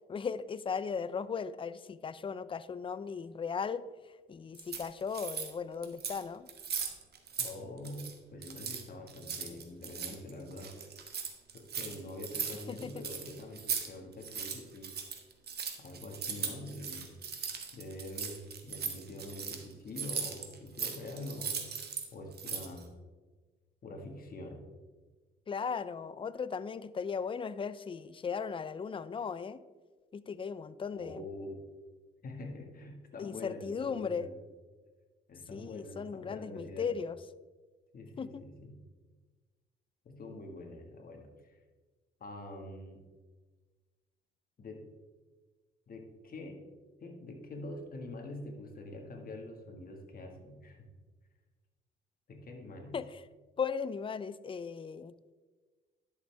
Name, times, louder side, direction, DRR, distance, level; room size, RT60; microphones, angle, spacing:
voice 1, 0.1-6.5 12.7-13.0 25.5-29.6 30.1-31.2 33.2-34.3 35.5-37.2 38.2-38.4 52.9-53.2 53.6-55.1, left 6 dB, 25° left, 15 dB, 0.4 m, -37 dB
sound 1, 4.5-5.5 5.8-6.2 6.5-7.5 7.8-8.1 8.4-13.9 14.1-22.1 22.3-22.8, right 6 dB, 55° right, 1.3 m, -38 dB
voice 2, 7.4-8.0 8.3-10.7 11.5-14.9 15.8-17.1 17.7-21.9 22.1-22.9 23.8-24.6 30.9-31.6 32.2-34.4 35.3-36.9 37.9-38.8 40.0-41.6 42.2-43.0 44.6-44.8 45.9-46.6 47.0-50.9 52.3-53.0, left 2 dB, 45° left, 2 dB, 1.7 m, -45 dB
11.0 x 6.8 x 3.4 m, 1.4 s
cardioid pair, 90°, 20 cm